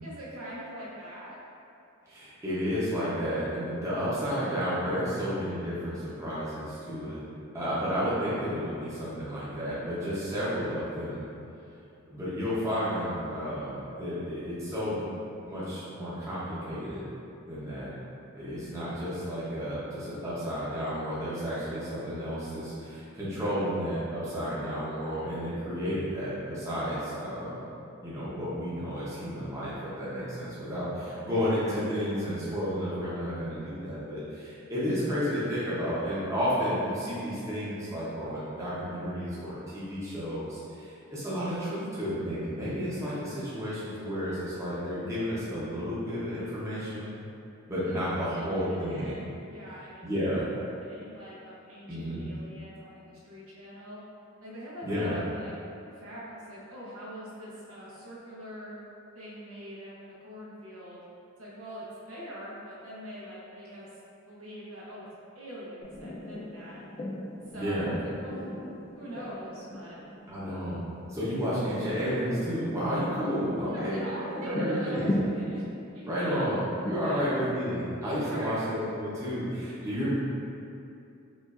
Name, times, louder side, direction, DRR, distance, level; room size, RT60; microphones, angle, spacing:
voice 1, 0.0-1.4 31.2-31.5 47.8-50.4 50.8-54.0 54.4-55.5 55.9-58.8 59.1-61.0 61.4-63.9 64.3-65.1 65.3-66.8 67.5-68.5 68.9-70.0 73.1-73.3 73.7-75.6 75.9-76.5 77.0-77.4 78.2-78.7, equal, 80° right, -7 dB, 0.9 m, -43 dB
voice 2, 2.1-7.2 7.5-11.3 12.1-15.0 15.5-17.0 17.5-17.9 18.3-27.7 28.0-47.1 47.7-49.2 50.0-50.5 51.9-52.3 54.8-55.2 67.5-67.9 70.3-70.8 71.1-74.0 74.3-75.1 76.0-80.1, equal, 15° right, -10 dB, 0.7 m, -32 dB
sound 1, 65.8-78.8, left 1 dB, 30° left, 0.4 m, -38 dB
5.1 x 2.5 x 2.4 m, 2.6 s
head